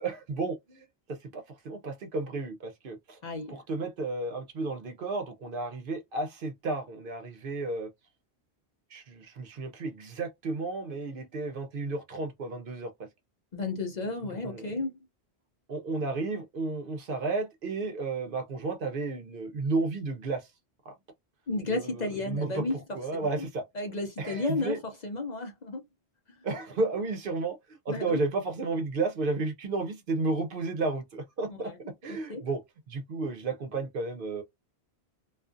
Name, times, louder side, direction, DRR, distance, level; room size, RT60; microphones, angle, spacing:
voice 1, 0.0-3.2 3.5-7.9 8.9-12.9 14.4-14.7 15.7-20.5 20.8-20.9 21.7-23.6 24.2-24.8 26.4-31.7 32.0-32.6 32.9-34.4, right 3 dB, 60° right, 0.8 m, -32 dB
voice 2, 3.2-3.6 13.5-14.9 21.5-22.8 23.7-25.8 27.9-28.2 31.6-31.8 32.1-32.4, left 2 dB, 50° left, 0.7 m, -33 dB
2.4 x 2.3 x 2.5 m
omnidirectional pair, 1.1 m